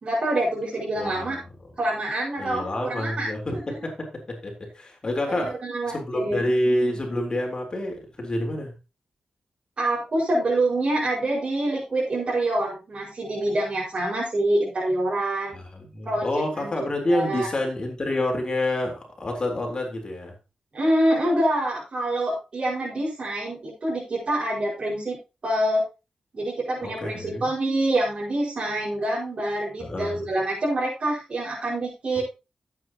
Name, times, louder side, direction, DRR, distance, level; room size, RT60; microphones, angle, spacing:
voice 1, 0.0-1.4 1.8-3.8 5.3-6.5 9.8-15.6 16.0-16.3 16.6-16.7 17.1-17.5 20.7-25.2 25.4-25.8 26.3-32.2, right 1 dB, 50° right, -5 dB, 5.1 m, -26 dB
voice 2, 1.0-1.4 2.4-5.6 5.9-8.8 15.5-15.6 15.9-20.3 27.0-27.5 29.8-30.2, left 1 dB, 35° left, 1 dB, 3.7 m, -28 dB
15.5 x 8.5 x 2.9 m, 0.28 s
cardioid pair, 80°, 2 cm